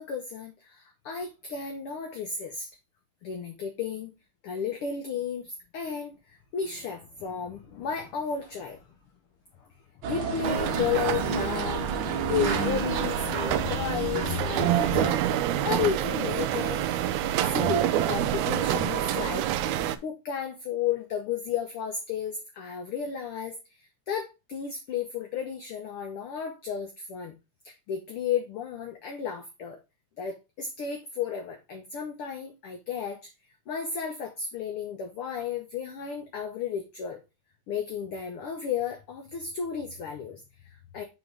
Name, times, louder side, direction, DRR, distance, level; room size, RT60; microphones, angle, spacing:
voice 1, 0.0-2.7 3.2-4.1 4.4-8.8 10.1-11.8 12.2-15.3 15.6-16.8 17.5-19.5 20.0-27.3 27.6-29.8 30.2-33.2 33.7-37.2 37.7-41.0, left 7 dB, 70° left, 4 dB, 1.3 m, -33 dB
sound 1, 10.0-15.1, right 2 dB, 60° right, 1.3 m, -31 dB
sound 2, 10.4-20.0, right 11 dB, 80° right, 1.7 m, -27 dB
6.2 x 3.6 x 5.0 m, 0.25 s
omnidirectional pair, 3.6 m